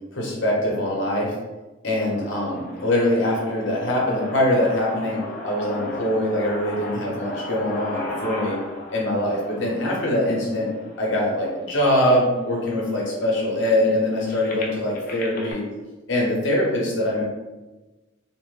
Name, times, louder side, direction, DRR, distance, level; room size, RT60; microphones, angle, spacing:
voice 1, 0.1-1.3 1.8-8.6 8.9-10.7 10.9-15.6 16.1-17.2, left 1 dB, 65° left, -3 dB, 0.9 m, -23 dB
sound 1, 2.1-12.1 12.7-12.8 13.1-15.5, left 2 dB, 45° left, 0.5 m, -36 dB
2.9 x 2.1 x 3.2 m, 1.2 s
head